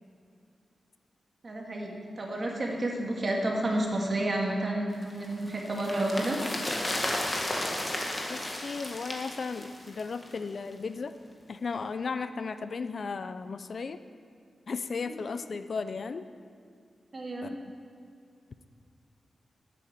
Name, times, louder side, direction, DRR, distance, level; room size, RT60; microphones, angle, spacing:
voice 1, 1.4-6.4 17.1-17.5, right 1 dB, 40° right, -1 dB, 2.1 m, -30 dB
sound 1, 5.0-10.4 10.7-10.8, left 1 dB, 25° left, 1.8 m, -34 dB
voice 2, 8.3-11.1 11.5-14.0 14.7-16.2 17.4-17.6, left 4 dB, 55° left, 11 dB, 0.4 m, -35 dB
11.5 x 8.4 x 6.8 m, 2.3 s
wide cardioid pair, 110°, 0 cm